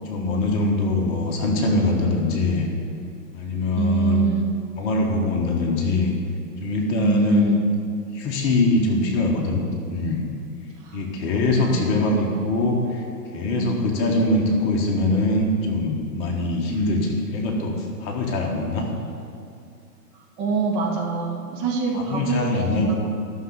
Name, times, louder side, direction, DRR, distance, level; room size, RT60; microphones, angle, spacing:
voice 1, 0.0-2.7 3.3-4.2 4.8-6.1 6.6-7.5 8.1-9.6 9.9-10.3 10.9-13.0 13.3-18.9 21.9-22.9, left 2 dB, 25° left, 0 dB, 1.5 m, -23 dB
voice 2, 3.7-4.5 7.0-7.6 10.8-11.0 11.6-11.9 13.6-13.8 20.1-22.9, right 3 dB, 30° right, 0 dB, 1.4 m, -24 dB
12.0 x 6.4 x 6.5 m, 2.5 s
figure-of-eight pair, 125°, 49 cm